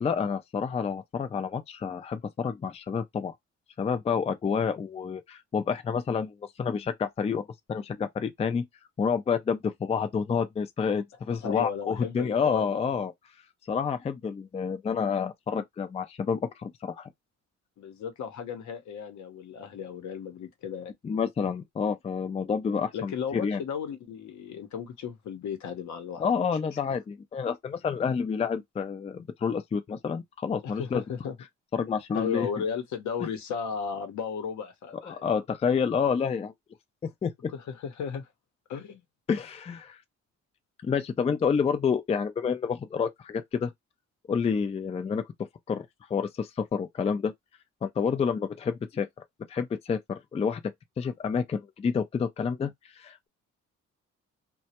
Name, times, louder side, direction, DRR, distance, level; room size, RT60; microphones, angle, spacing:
voice 1, 0.0-3.3 3.8-7.4 7.7-8.7 9.0-13.1 13.7-17.1 21.0-23.6 26.2-31.0 31.7-32.5 35.0-36.5 37.0-37.5 39.3-40.0 40.8-43.7 44.3-45.2 45.7-45.9 46.1-47.3 47.8-49.1 49.5-53.3, left 6 dB, 20° left, 0.4 m, -29 dB
voice 2, 11.3-12.9 17.8-20.9 22.9-26.2 30.6-31.4 32.1-35.2 37.5-38.3 38.7-39.0, left 7 dB, 70° left, 0.8 m, -35 dB
2.2 x 2.1 x 2.8 m
cardioid pair, 90°, 30 cm